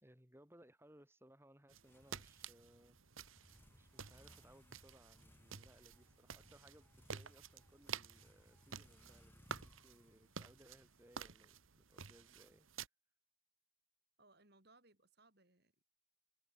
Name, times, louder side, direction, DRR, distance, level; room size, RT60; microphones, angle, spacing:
voice 1, 0.0-3.0 3.7-12.7, right 1 dB, 10° right, 2.4 m, -65 dB
sound 1, 1.7-12.9, right 6 dB, 85° right, 1.6 m, -52 dB
sound 2, 1.8-11.6, equal, 10° left, 6.1 m, -67 dB
voice 2, 14.2-15.8, right 2 dB, 50° right, 4.6 m, -68 dB
head